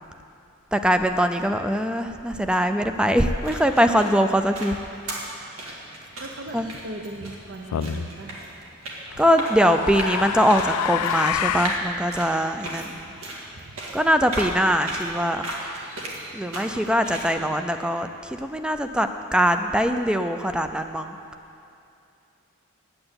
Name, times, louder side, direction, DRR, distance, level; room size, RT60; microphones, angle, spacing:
voice 1, 0.7-4.8 6.5-6.7 9.2-12.9 13.9-15.5 16.3-18.1 18.4-21.2, equal, 5° right, 8 dB, 0.4 m, -22 dB
sound 1, 3.2-17.3, right 1 dB, 70° right, 1.9 m, -36 dB
voice 2, 6.2-8.4 12.8-13.2 13.5-13.8, right 2 dB, 55° right, 2 dB, 0.7 m, -39 dB
sound 2, 7.7-8.1 9.1-11.9, left 9 dB, 85° left, 0.4 m, -27 dB
8.8 x 7.8 x 8.8 m, 2.6 s
head